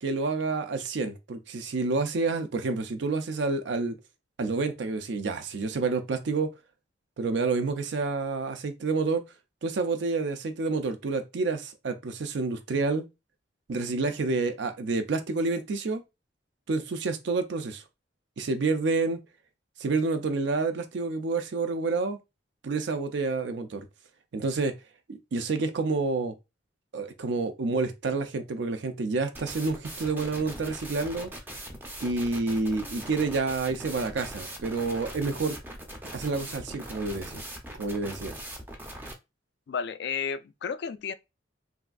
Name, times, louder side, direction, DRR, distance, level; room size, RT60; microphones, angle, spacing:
voice 1, 0.0-4.0 4.4-6.5 7.2-9.2 9.6-13.0 13.7-16.0 16.7-17.8 18.4-19.2 19.8-22.2 22.6-23.9 24.3-24.7 25.1-26.3 26.9-31.3 32.0-35.6 36.1-37.4 37.8-38.3, right 3 dB, 70° right, 0.4 m, -29 dB
sound 1, 29.3-39.1, right 1 dB, 10° right, 0.5 m, -41 dB
voice 2, 39.7-41.1, left 6 dB, 60° left, 0.3 m, -32 dB
3.3 x 2.4 x 2.3 m
head